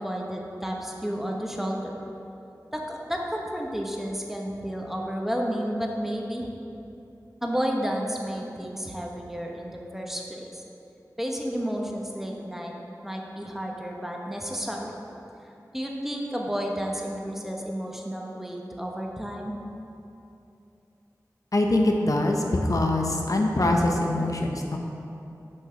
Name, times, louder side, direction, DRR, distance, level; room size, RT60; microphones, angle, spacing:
voice 1, 0.0-2.0 2.7-6.5 7.4-10.6 11.2-12.7 13.0-14.9 15.7-19.5, equal, 5° right, 0 dB, 1.1 m, -31 dB
voice 2, 21.5-24.8, left 1 dB, 60° left, 1 dB, 0.8 m, -23 dB
7.1 x 5.6 x 5.7 m, 2.8 s
cardioid pair, 40°, 7 cm